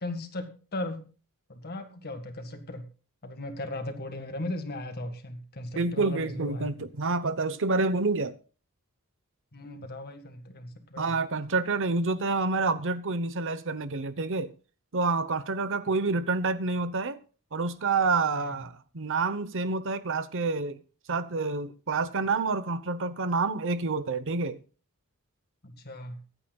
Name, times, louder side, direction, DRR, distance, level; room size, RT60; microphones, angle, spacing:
voice 1, 0.0-1.1 1.5-2.9 3.2-6.7 9.5-11.1 18.3-18.5 25.6-26.2, left 1 dB, 45° left, 1.9 m, -37 dB
voice 2, 5.8-8.3 11.0-14.5 14.9-17.2 17.5-20.8 21.1-24.6, right 3 dB, 60° right, 0.9 m, -28 dB
23.5 x 9.0 x 2.3 m
head